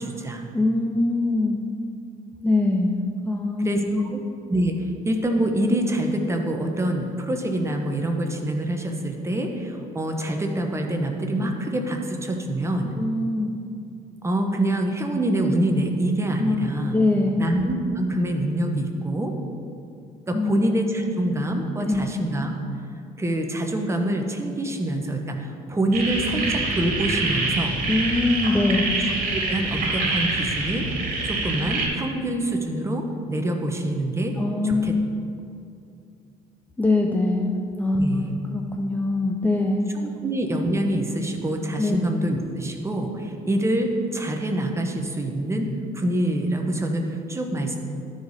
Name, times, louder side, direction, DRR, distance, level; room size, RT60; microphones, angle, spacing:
voice 1, 0.0-0.4 3.6-3.8 4.1-4.2 4.5-12.9 14.2-17.0 17.4-19.3 20.3-22.5 23.2-27.8 29.0-30.9 31.2-34.4 34.6-34.9 38.0-38.3 40.0-45.7 45.9-47.8, right 1 dB, 15° right, 3 dB, 0.9 m, -25 dB
voice 2, 0.5-1.6 2.4-3.0 3.2-3.7 3.9-4.1 13.0-13.5 16.4-16.7 16.9-17.4 20.3-20.6 21.0-21.1 21.9-22.1 27.9-28.9 34.4-35.1 36.8-39.9 41.8-42.0, left 2 dB, 10° left, 1 dB, 0.5 m, -23 dB
sound 1, 25.9-31.9, right 3 dB, 50° right, 2.0 m, -26 dB
12.0 x 4.9 x 4.1 m, 2.5 s
cardioid pair, 110°, 17 cm